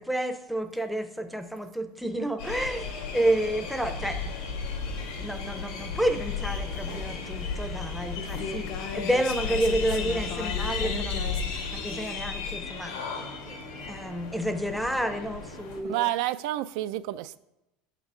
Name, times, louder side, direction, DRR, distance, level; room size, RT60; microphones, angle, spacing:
voice 1, 0.0-4.2 5.2-11.4 11.7-12.9 13.5-13.6 13.9-16.1, right 1 dB, ahead, 0.5 m, -30 dB
sound 1, 2.4-15.8, left 5 dB, 90° left, 2.2 m, -34 dB
sound 2, 5.7-11.4, left 6 dB, 55° left, 0.9 m, -39 dB
voice 2, 15.9-17.4, right 14 dB, 70° right, 0.3 m, -29 dB
7.2 x 6.0 x 5.5 m
cardioid pair, 155°, 2 cm